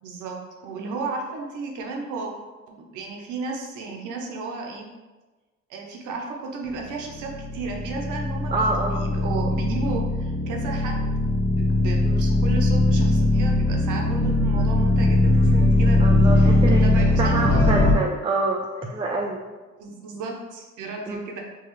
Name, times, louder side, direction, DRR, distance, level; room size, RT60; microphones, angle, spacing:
voice 1, 0.0-2.3 2.9-4.9 5.7-11.0 11.5-16.1 16.4-16.5 16.8-17.6 19.8-21.4, right 4 dB, 90° right, 1 dB, 0.7 m, -34 dB
sound 1, 7.1-17.9, left 1 dB, 5° left, 0.9 m, -20 dB
voice 2, 8.5-9.1 12.0-12.2 16.0-16.8 17.2-19.4 21.1-21.3, right 2 dB, 20° right, 0 dB, 0.4 m, -26 dB
4.7 x 2.4 x 3.0 m, 1.2 s
cardioid pair, 90°, 30 cm